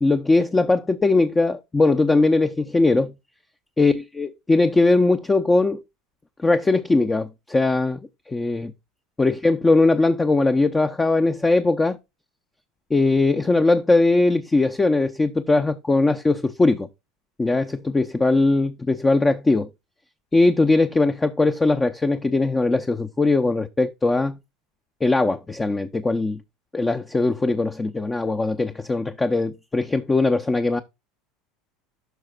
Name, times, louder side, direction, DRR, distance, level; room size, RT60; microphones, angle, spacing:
voice 1, 0.0-3.1 3.8-5.8 6.4-8.0 8.3-8.7 9.2-12.0 12.9-16.9 17.4-19.7 20.3-24.4 25.0-26.4 26.7-30.8, left 3 dB, 15° left, 0.7 m, -20 dB
14.0 x 5.7 x 2.4 m
hypercardioid pair, 95°, 0 cm